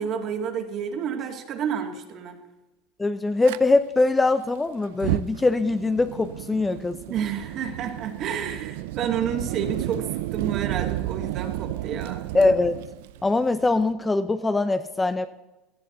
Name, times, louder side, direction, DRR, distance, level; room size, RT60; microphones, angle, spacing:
voice 1, 0.0-2.4 7.1-12.3, right 7 dB, 45° right, 4 dB, 2.2 m, -30 dB
voice 2, 3.0-7.0 12.3-12.8 13.2-15.3, left 3 dB, 10° left, 10 dB, 0.6 m, -22 dB
Fire, 3.4-3.6 4.9-13.9, right 16 dB, 75° right, 0.5 m, -32 dB
17.5 x 13.0 x 4.0 m, 1.1 s
supercardioid pair, 130°, 0 cm